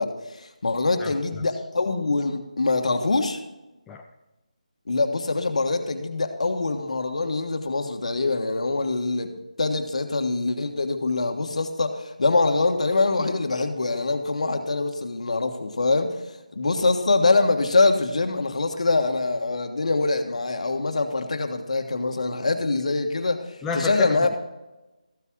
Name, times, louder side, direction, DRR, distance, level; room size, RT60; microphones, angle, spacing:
voice 1, 0.0-3.4 4.9-9.3 9.6-16.2 16.5-23.4 23.7-24.3, left 3 dB, 60° left, 6 dB, 1.5 m, -24 dB
voice 2, 1.0-1.5 3.9-4.0 23.6-24.3, left 4 dB, 5° left, 0 dB, 0.4 m, -31 dB
14.0 x 8.3 x 3.8 m, 1.0 s
figure-of-eight pair, 165°, 4 cm